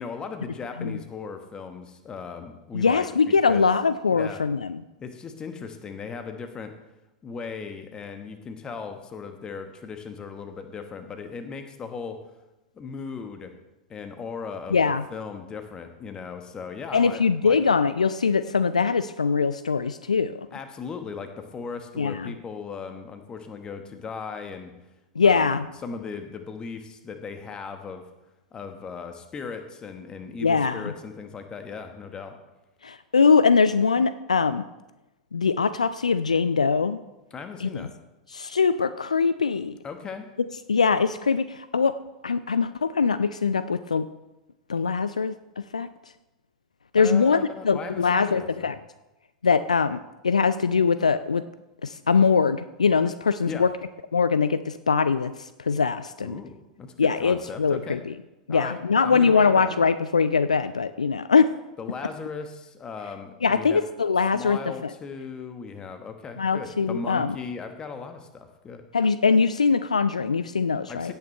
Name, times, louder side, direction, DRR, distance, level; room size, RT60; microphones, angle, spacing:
voice 1, 0.0-3.7 4.1-4.4 5.0-6.7 7.2-12.2 12.7-13.5 13.9-17.6 20.5-24.7 25.2-28.1 28.5-32.4 37.3-37.9 39.8-40.3 47.0-48.7 53.5-53.6 56.2-58.0 58.5-59.7 61.8-63.9 64.3-68.9 70.9-71.1, left 5 dB, 20° left, 7 dB, 1.3 m, -37 dB
voice 2, 2.7-4.8 14.7-15.0 16.9-20.5 22.0-22.3 25.2-25.6 30.4-30.9 32.8-34.6 35.3-37.0 37.6-37.9 38.3-39.7 40.7-41.9 42.2-44.1 44.7-45.9 46.9-47.4 47.6-48.8 49.4-51.4 51.8-53.7 54.1-56.4 57.0-58.1 58.5-61.5 63.4-64.9 66.4-67.3 68.9-71.1, left 5 dB, 75° left, 13 dB, 0.4 m, -22 dB
17.0 x 8.8 x 3.3 m, 0.99 s
figure-of-eight pair, 90°, 4 cm